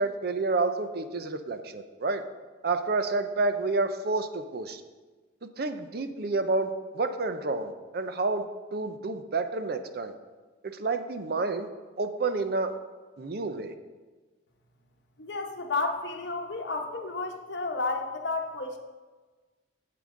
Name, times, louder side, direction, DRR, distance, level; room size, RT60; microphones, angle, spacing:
voice 1, 0.0-2.2 2.6-4.8 5.6-8.4 8.7-10.1 10.7-11.7 12.0-12.7 13.2-13.7, right 3 dB, 55° right, 9 dB, 0.5 m, -29 dB
voice 2, 15.2-18.8, left 3 dB, 65° left, 4 dB, 0.9 m, -32 dB
8.5 x 7.7 x 3.8 m, 1.3 s
head